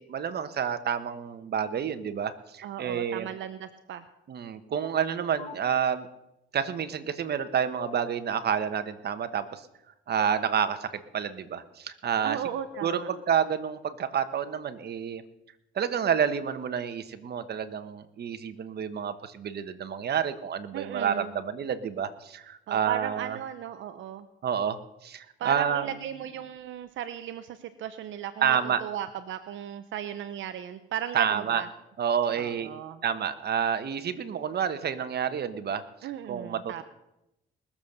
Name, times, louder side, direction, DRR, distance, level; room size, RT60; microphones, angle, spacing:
voice 1, 0.0-3.3 4.3-6.1 6.5-9.6 10.1-12.4 12.8-15.2 15.7-23.4 24.4-25.9 28.4-28.8 31.1-31.6 32.0-32.7 33.0-36.8, right 8 dB, 55° right, 10 dB, 1.2 m, -29 dB
voice 2, 2.6-4.0 12.2-13.1 20.7-21.4 22.7-24.3 25.4-31.7 32.3-33.0 36.0-36.8, right 10 dB, 75° right, 10 dB, 0.8 m, -36 dB
sound 1, 5.4-5.5 7.8-7.9 10.2-10.4 12.6-13.0, left 7 dB, 30° left, 0.9 m, -40 dB
20.0 x 7.2 x 6.6 m, 0.89 s
cardioid pair, 90°, 20 cm